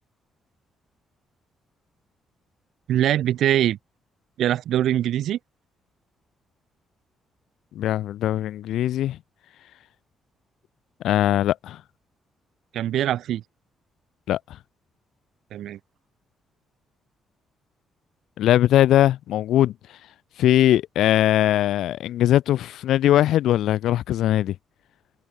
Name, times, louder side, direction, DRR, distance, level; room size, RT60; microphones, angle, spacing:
voice 1, 2.9-3.8 4.4-5.4 12.7-13.4 15.5-15.8, right 12 dB, 75° right, 2.4 m, -22 dB
voice 2, 7.7-9.2 11.0-11.8 14.3-14.4 18.4-19.7 20.4-24.5, left 12 dB, 80° left, 0.8 m, -20 dB
cardioid pair, 130°, 0 cm